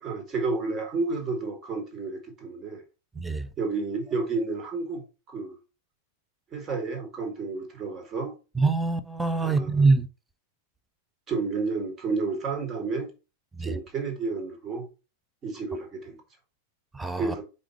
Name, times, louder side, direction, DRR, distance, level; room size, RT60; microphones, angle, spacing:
voice 1, 0.0-2.8 3.6-5.6 6.5-8.3 9.4-9.9 11.3-13.1 13.6-14.9 15.4-16.2 17.2-17.4, right 4 dB, 30° right, 1.9 m, -31 dB
voice 2, 3.2-3.5 8.6-10.1 13.6-13.7 16.9-17.3, right 3 dB, 5° right, 0.6 m, -24 dB
5.0 x 4.2 x 4.5 m
figure-of-eight pair, 90°, 0 cm